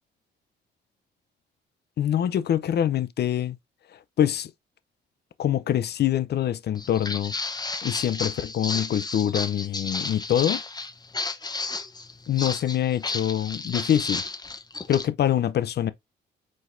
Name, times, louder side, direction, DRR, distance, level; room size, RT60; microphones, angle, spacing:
voice 1, 2.0-3.6 3.9-4.5 5.4-7.3 7.8-10.6 12.3-14.2 14.9-15.9, left 10 dB, 55° left, 0.6 m, -25 dB
Walk footsteps, 6.8-15.1, left 3 dB, 20° left, 0.9 m, -32 dB
5.0 x 4.0 x 2.6 m
cardioid pair, 90°, 20 cm